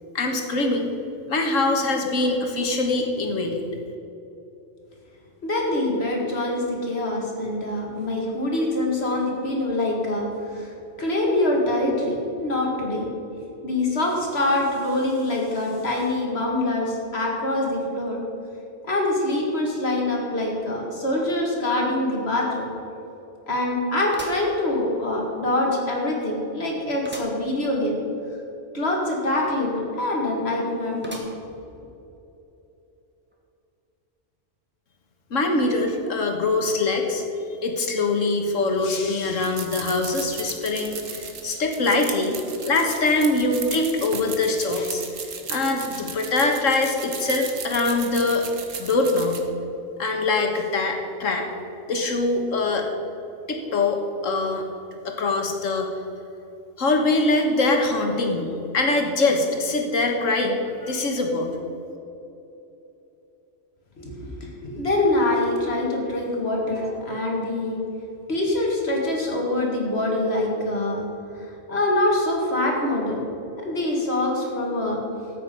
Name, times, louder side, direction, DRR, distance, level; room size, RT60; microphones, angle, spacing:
voice 1, 0.2-0.9 1.3-3.6 35.3-37.2 37.6-42.4 42.6-45.0 45.5-48.4 48.8-49.4 50.0-51.5 51.9-52.9 53.5-54.6 55.0-55.9 56.8-61.5, left 2 dB, 85° left, 3 dB, 1.8 m, -23 dB
voice 2, 5.4-10.7 11.0-13.1 13.6-18.2 18.9-22.7 23.5-28.0 28.7-31.2 64.0-67.8 68.3-71.1 71.3-73.2 73.6-75.0, left 1 dB, 55° left, -1 dB, 2.3 m, -24 dB
sound 1, 24.1-25.2 25.7-25.8 27.0-27.5 27.9-28.0 28.2-28.3 31.0-31.7 32.2-32.3 33.3-33.4, right 1 dB, 10° right, 1.4 m, -40 dB
sound 2, 39.3-49.4, right 6 dB, 85° right, 1.5 m, -36 dB
13.0 x 8.7 x 5.3 m, 3.0 s
omnidirectional pair, 1.3 m